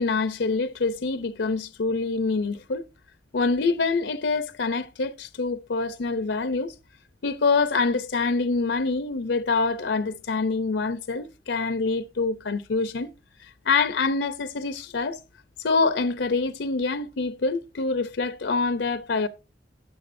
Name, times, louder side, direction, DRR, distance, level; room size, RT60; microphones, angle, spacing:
voice 1, 0.0-2.8 3.3-6.7 7.2-13.1 13.4-15.2 15.6-19.3, left 4 dB, 85° left, 0.6 m, -25 dB
13.5 x 9.2 x 2.6 m
head